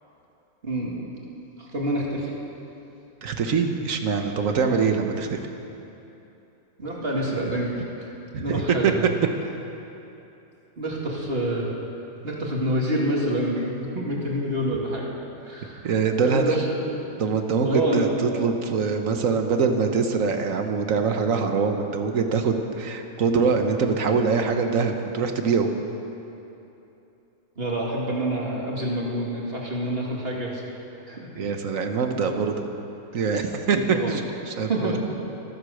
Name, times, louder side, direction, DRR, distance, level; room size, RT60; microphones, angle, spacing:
voice 1, 0.6-0.9 1.6-2.3 6.8-8.1 8.4-9.1 10.8-11.7 12.2-15.1 15.4-15.9 16.2-16.8 17.6-18.2 27.6-30.6 31.1-31.3 33.9-34.1 34.7-35.0, right 1 dB, 45° right, -3 dB, 2.5 m, -27 dB
voice 2, 3.2-5.4 8.3-8.9 15.8-16.6 17.2-25.7 31.4-32.7 33.1-34.9, right 5 dB, 75° right, 5 dB, 1.5 m, -23 dB
24.0 x 8.1 x 6.5 m, 2.9 s
omnidirectional pair, 1.4 m